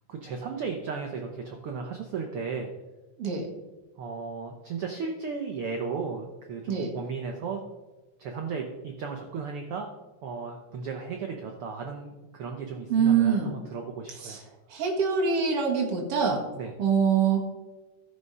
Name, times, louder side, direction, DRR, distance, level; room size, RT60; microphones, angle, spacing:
voice 1, 0.1-2.7 4.0-7.6 8.2-9.9 10.2-14.4 16.5-16.7, right 5 dB, 85° right, 3 dB, 1.2 m, -35 dB
voice 2, 12.9-13.5 14.2-14.4 14.7-16.4 16.8-17.4, right 6 dB, 50° right, 0 dB, 2.4 m, -24 dB
13.0 x 6.9 x 5.4 m, 1.1 s
omnidirectional pair, 3.8 m